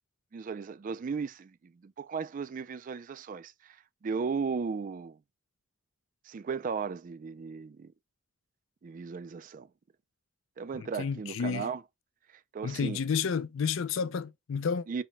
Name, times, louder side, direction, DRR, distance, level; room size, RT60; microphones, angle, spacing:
voice 1, 0.3-3.8 4.0-5.2 6.3-7.9 8.8-9.7 10.6-11.8 12.5-13.0 14.9-15.0, right 5 dB, 40° right, 0.3 m, -36 dB
voice 2, 10.7-11.7 12.6-14.9, left 6 dB, 65° left, 0.4 m, -31 dB
5.5 x 2.2 x 4.4 m
head